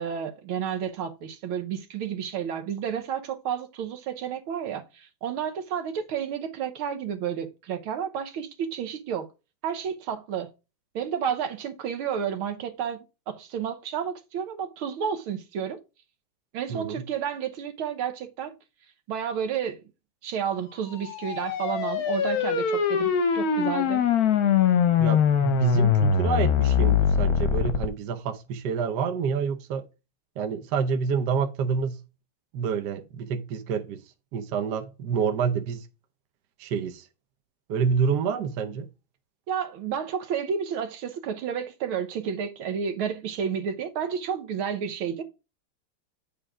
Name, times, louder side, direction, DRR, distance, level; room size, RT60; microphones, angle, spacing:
voice 1, 0.0-9.3 9.6-10.5 11.0-15.8 16.5-18.5 19.1-19.8 20.2-24.1 39.5-45.2, right 8 dB, 80° right, 1.8 m, -31 dB
voice 2, 16.7-17.0 25.0-29.8 30.4-32.0 32.5-34.0 34.3-35.9 36.6-37.0 37.7-38.9, right 6 dB, 60° right, 1.2 m, -28 dB
sound 1, 20.9-27.9, left 7 dB, 55° left, 1.1 m, -22 dB
8.8 x 3.5 x 4.9 m
omnidirectional pair, 2.3 m